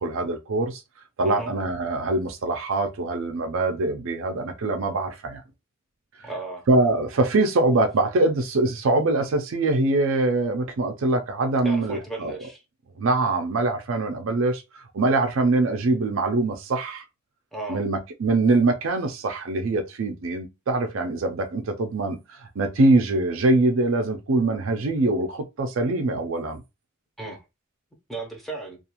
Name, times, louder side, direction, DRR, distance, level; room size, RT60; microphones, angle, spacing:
voice 1, 0.0-0.8 1.2-5.4 6.7-12.3 13.0-17.0 17.7-26.6, right 2 dB, 70° right, 0.5 m, -23 dB
voice 2, 1.2-1.5 6.2-6.6 11.6-12.6 17.5-17.8 27.2-27.4 28.1-28.8, right 2 dB, ahead, 0.6 m, -35 dB
2.4 x 2.4 x 2.9 m
head